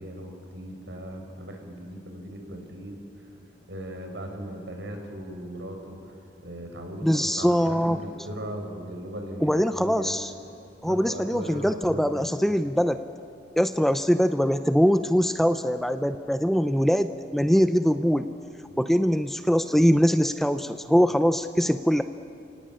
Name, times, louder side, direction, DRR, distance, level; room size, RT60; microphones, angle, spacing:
voice 1, 0.0-3.3 3.7-10.1 10.8-12.4 18.7-18.8, right 1 dB, 80° right, 3 dB, 4.7 m, -38 dB
voice 2, 7.0-8.0 9.4-10.3 10.8-13.0 13.6-18.3 18.8-22.0, equal, ahead, 10 dB, 0.6 m, -22 dB
30.0 x 18.5 x 8.8 m, 2.5 s
head